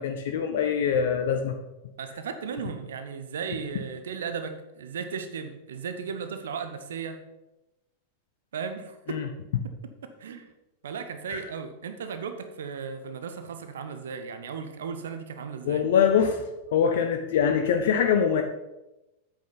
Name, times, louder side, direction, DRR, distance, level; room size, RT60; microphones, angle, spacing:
voice 1, 0.0-1.5 9.1-9.3 11.3-11.4 15.6-16.4 16.7-18.4, left 7 dB, 55° left, 5 dB, 0.7 m, -23 dB
voice 2, 2.0-7.2 8.5-9.2 10.2-10.5 10.8-15.8, right 6 dB, 65° right, 8 dB, 0.8 m, -36 dB
8.4 x 8.1 x 4.0 m, 0.97 s
figure-of-eight pair, 90°, 0 cm